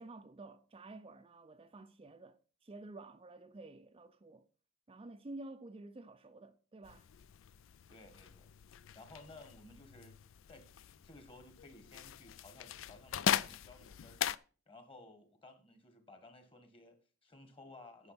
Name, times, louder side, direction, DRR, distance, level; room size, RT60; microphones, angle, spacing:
voice 1, 0.0-4.5 4.9-7.1, right 2 dB, 25° right, 0.5 m, -51 dB
sound 1, 6.8-14.4, left 9 dB, 70° left, 0.4 m, -40 dB
voice 2, 7.9-8.5 8.9-10.2 10.5-14.2 14.7-18.1, left 2 dB, 25° left, 1.8 m, -57 dB
9.4 x 6.2 x 6.0 m
head